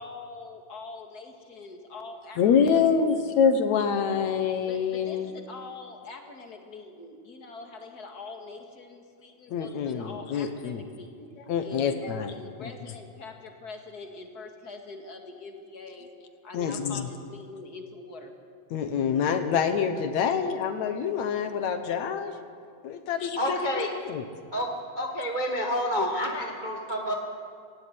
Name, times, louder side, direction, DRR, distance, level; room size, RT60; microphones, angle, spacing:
voice 1, 0.0-3.4 4.6-11.3 11.6-16.1 16.4-18.4, left 3 dB, 35° left, 3 dB, 2.2 m, -44 dB
voice 2, 2.4-5.3 9.5-10.8 11.5-12.3 16.5-17.1 18.7-22.4 22.8-24.2, left 6 dB, 70° left, 8 dB, 2.4 m, -26 dB
voice 3, 23.4-23.9 24.5-24.7 25.0-27.1, equal, 25° right, 1 dB, 1.1 m, -28 dB
17.5 x 17.0 x 9.6 m, 2.4 s
omnidirectional pair, 3.4 m